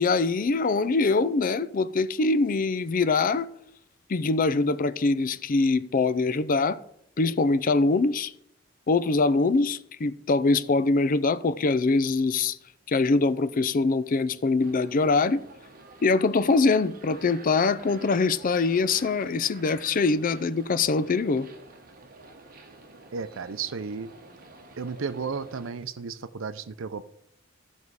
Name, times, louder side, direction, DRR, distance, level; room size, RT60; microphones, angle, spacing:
voice 1, 0.0-3.5 4.1-6.8 7.2-8.3 8.9-12.6 12.9-15.4 16.0-21.5, left 3 dB, 45° left, 0.4 m, -23 dB
sound 1, 14.6-25.7, right 2 dB, 45° right, 1.2 m, -49 dB
voice 2, 23.1-24.1 24.8-27.0, right 5 dB, 70° right, 0.6 m, -33 dB
14.5 x 5.5 x 4.8 m
head